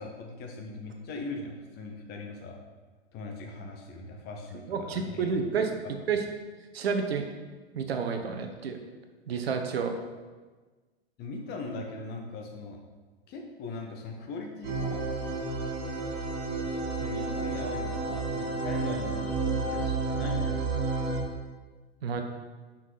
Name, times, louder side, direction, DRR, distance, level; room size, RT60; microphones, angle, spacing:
voice 1, 0.0-2.6 3.1-5.4 11.2-12.8 13.3-15.0 16.9-20.7, left 3 dB, 30° left, 2 dB, 1.4 m, -40 dB
voice 2, 4.7-5.8 6.1-6.2 6.7-7.3 7.7-8.8 9.3-10.0 22.0-22.2, right 5 dB, 65° right, 5 dB, 1.1 m, -29 dB
sound 1, 14.6-21.2, right 3 dB, 45° right, 2.6 m, -31 dB
9.1 x 5.9 x 4.1 m, 1.3 s
figure-of-eight pair, 110°, 33 cm